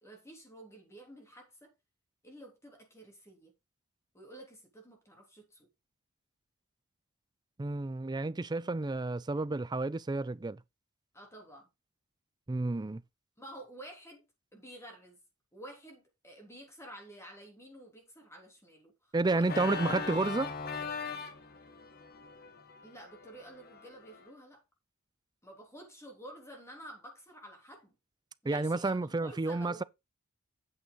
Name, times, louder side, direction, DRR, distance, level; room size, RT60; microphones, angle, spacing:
voice 1, 0.0-1.7 2.2-3.5 4.1-5.7 11.1-11.7 13.4-14.3 14.5-15.2 15.5-19.7 22.8-24.6 25.4-28.0 28.4-29.9, right 1 dB, 10° left, 3.4 m, -51 dB
voice 2, 7.6-10.6 12.5-13.0 19.1-20.5 28.5-29.8, right 3 dB, 20° right, 0.4 m, -31 dB
Organ, 19.4-24.3, left 4 dB, 45° left, 1.4 m, -40 dB
8.8 x 7.0 x 3.9 m
head